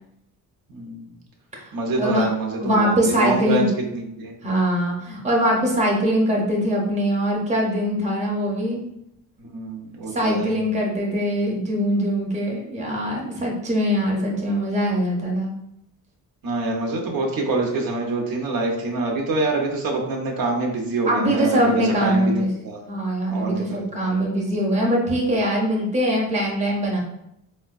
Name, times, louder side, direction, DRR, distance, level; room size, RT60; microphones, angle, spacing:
voice 1, 0.7-1.1 1.7-3.7 3.9-4.3 9.4-10.5 16.4-22.8 23.3-23.8, right 3 dB, 90° right, 1 dB, 0.8 m, -25 dB
voice 2, 2.6-3.7 4.4-8.8 10.1-15.5 21.1-22.5 22.9-27.0, equal, 20° right, -2 dB, 0.7 m, -22 dB
4.3 x 2.1 x 2.4 m, 0.81 s
wide cardioid pair, 155°, 34 cm